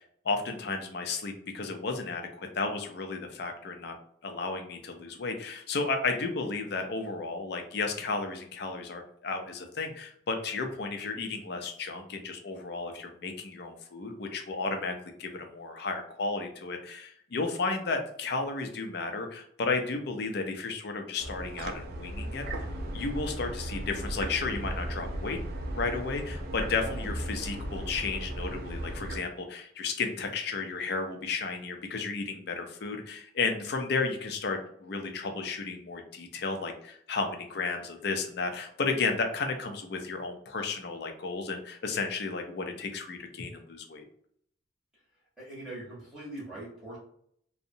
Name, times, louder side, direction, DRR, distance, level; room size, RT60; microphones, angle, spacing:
voice 1, 0.0-4.0 4.2-25.4 25.7-44.1, left 4 dB, 55° left, 5 dB, 0.4 m, -33 dB
sound 1, 21.2-29.2, right 1 dB, 50° right, 0.3 m, -36 dB
voice 2, 45.4-47.0, right 1 dB, 5° right, -10 dB, 0.8 m, -42 dB
2.7 x 2.0 x 2.6 m, 0.65 s
head